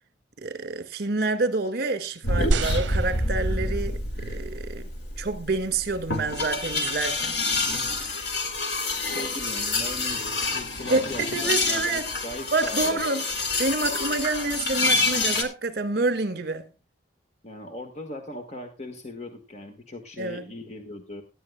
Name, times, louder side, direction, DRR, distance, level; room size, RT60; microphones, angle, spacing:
voice 1, 0.4-4.9 5.2-7.4 10.9-12.1 12.5-13.2 13.6-16.7 20.2-20.5, right 3 dB, 55° right, 1.8 m, -28 dB
sound 1, 2.2-15.4, left 2 dB, 65° left, 2.7 m, -27 dB
sound 2, 2.5-4.0 4.8-4.9, right 3 dB, 80° right, 0.7 m, -29 dB
voice 2, 9.1-13.0 17.4-21.2, left 1 dB, 35° left, 1.6 m, -39 dB
18.0 x 12.5 x 2.3 m
head